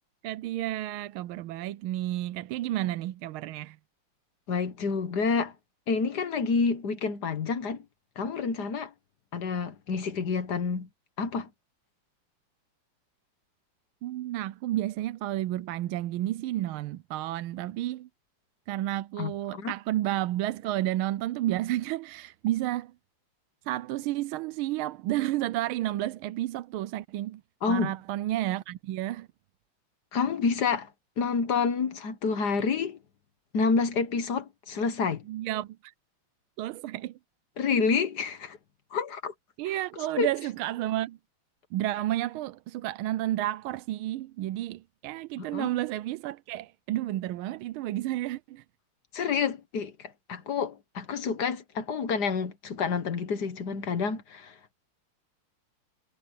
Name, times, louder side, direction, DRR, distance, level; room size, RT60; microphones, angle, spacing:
voice 1, 0.2-3.8 14.0-18.1 18.7-22.9 23.7-27.4 27.7-29.3 35.3-35.9 36.6-37.2 39.6-41.2 41.7-48.6, right 14 dB, 75° right, 1.4 m, -31 dB
voice 2, 4.5-5.5 5.9-7.8 8.2-8.9 9.3-10.9 11.2-11.5 19.2-19.7 27.6-27.9 30.1-30.9 31.2-33.0 33.5-35.2 37.6-38.6 38.9-39.3 39.6-39.8 40.2-40.3 45.4-45.7 49.1-54.7, left 5 dB, 50° left, 1.7 m, -28 dB
omnidirectional pair, 2.4 m